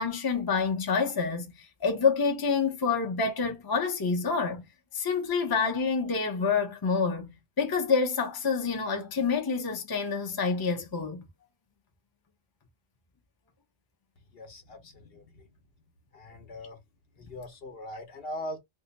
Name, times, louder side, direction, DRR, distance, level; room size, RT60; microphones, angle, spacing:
voice 1, 0.0-4.6 4.9-11.2, left 5 dB, 25° left, 0.6 m, -27 dB
voice 2, 14.3-15.5 16.1-16.8 17.2-18.6, left 1 dB, 65° left, 1.1 m, -41 dB
2.7 x 2.5 x 3.9 m
omnidirectional pair, 1.0 m